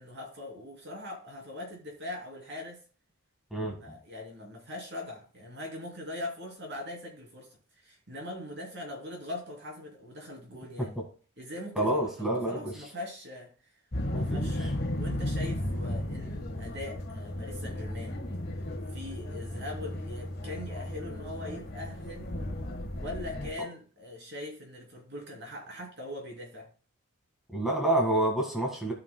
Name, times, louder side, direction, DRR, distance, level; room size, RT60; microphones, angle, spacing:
voice 1, 0.0-2.8 3.8-11.0 11.4-13.7 14.1-18.2 18.6-22.3 23.0-26.7, left 1 dB, 50° right, 2.8 m, -41 dB
voice 2, 3.5-4.0 10.8-10.9 11.8-12.7 14.1-14.7 27.5-28.9, right 1 dB, ahead, 1.7 m, -28 dB
sound 1, 13.9-23.5, left 1 dB, 45° left, 1.5 m, -34 dB
15.5 x 5.6 x 2.2 m
head